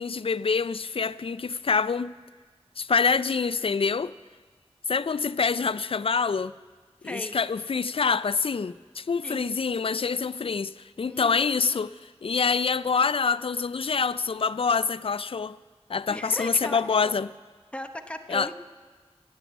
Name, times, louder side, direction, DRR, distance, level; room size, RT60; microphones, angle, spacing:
voice 1, 0.0-2.1 2.8-4.1 4.9-6.5 7.0-11.9 12.2-15.6 15.9-17.3 18.3-18.5, left 5 dB, 60° left, 0.4 m, -26 dB
voice 2, 7.0-7.3 9.2-9.5 11.1-11.8 16.1-17.2 17.7-18.5, left 1 dB, 10° left, 1.0 m, -37 dB
16.5 x 9.4 x 8.1 m
wide cardioid pair, 55°, 11 cm